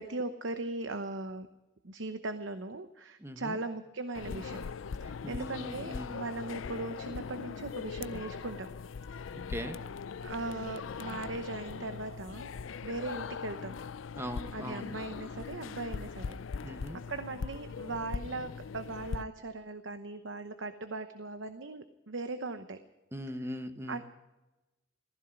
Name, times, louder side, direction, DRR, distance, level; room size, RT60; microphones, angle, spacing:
voice 1, 0.0-1.5 1.8-4.7 5.0-8.7 10.2-12.5 12.8-13.8 14.5-16.4 16.7-16.8 17.1-22.8 23.9-24.0, right 2 dB, 75° right, 9 dB, 0.9 m, -39 dB
voice 2, 3.2-3.6 5.2-6.2 9.3-9.8 14.2-15.0 16.6-17.0 23.1-24.0, equal, 15° right, 8 dB, 1.3 m, -40 dB
sound 1, 4.1-19.2, left 5 dB, 90° left, 0.5 m, -40 dB
15.5 x 15.0 x 6.0 m, 1.1 s
head